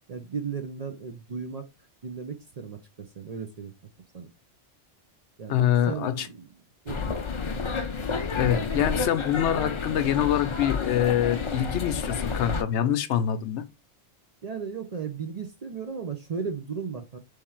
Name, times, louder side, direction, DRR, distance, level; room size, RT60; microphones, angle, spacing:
voice 1, 0.1-1.7 2.0-3.7 4.1-4.3 5.4-6.5 6.8-7.5 14.4-17.2, right 6 dB, 50° right, 0.5 m, -36 dB
voice 2, 5.5-6.3 8.3-13.6, left 10 dB, 70° left, 0.9 m, -25 dB
sound 1, 6.9-12.6, left 5 dB, 45° left, 0.4 m, -30 dB
3.6 x 3.2 x 4.4 m
omnidirectional pair, 1.2 m